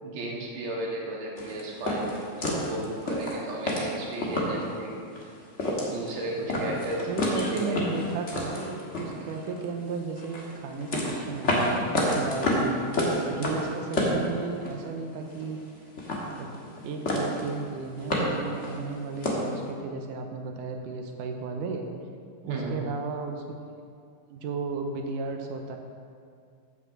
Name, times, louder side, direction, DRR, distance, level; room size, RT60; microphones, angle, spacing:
voice 1, 0.0-5.0 5.8-7.8 22.4-22.8, right 1 dB, 55° right, -2 dB, 2.6 m, -34 dB
sound 1, 1.4-4.7 5.1-5.2 5.5-6.2 6.5-9.7 10.1-14.9 15.1-15.7 16.0-16.8 17.0-17.5 17.8-19.5, left 1 dB, 65° left, 0.7 m, -29 dB
voice 2, 7.1-15.6 16.3-21.9 22.4-23.7 24.3-25.8, right 4 dB, 75° right, 4 dB, 2.1 m, -34 dB
9.6 x 6.0 x 7.5 m, 2.3 s
omnidirectional pair, 4.1 m